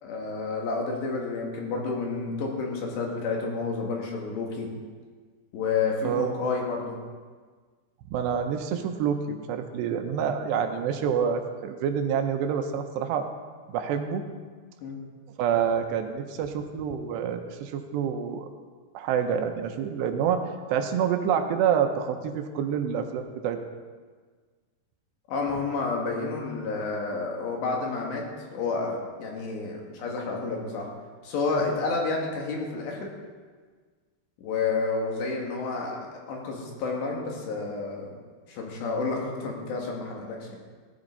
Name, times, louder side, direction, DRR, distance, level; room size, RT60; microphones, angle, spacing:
voice 1, 0.0-4.7 5.5-7.0 14.8-15.0 25.3-30.9 31.2-33.1 34.4-38.1 38.5-40.6, left 4 dB, 80° left, -1 dB, 4.3 m, -30 dB
voice 2, 6.0-6.4 8.1-13.3 13.7-14.2 15.4-18.5 18.9-20.4 20.7-23.6, right 8 dB, 85° right, 6 dB, 3.0 m, -27 dB
16.5 x 13.5 x 4.1 m, 1.5 s
omnidirectional pair, 4.9 m